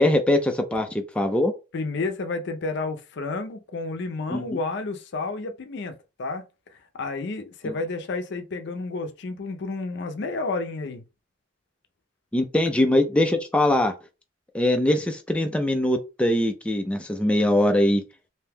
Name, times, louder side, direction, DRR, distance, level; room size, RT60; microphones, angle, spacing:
voice 1, 0.0-1.5 4.3-4.4 7.7-7.8 12.3-13.9 14.5-18.0, left 1 dB, 5° left, 0.3 m, -22 dB
voice 2, 1.7-6.4 7.0-11.0, left 3 dB, 65° left, 0.5 m, -31 dB
2.6 x 2.1 x 3.4 m
head